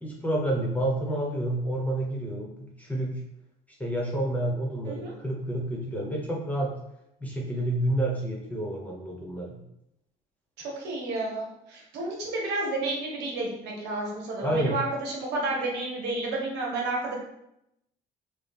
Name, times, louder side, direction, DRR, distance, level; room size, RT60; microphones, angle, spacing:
voice 1, 0.0-3.2 3.8-6.8 7.2-9.6 14.4-14.8, right 1 dB, 10° left, -3 dB, 1.1 m, -29 dB
voice 2, 10.6-17.1, right 2 dB, 85° right, -1 dB, 1.1 m, -31 dB
4.2 x 2.3 x 3.5 m, 0.81 s
cardioid pair, 110°, 17 cm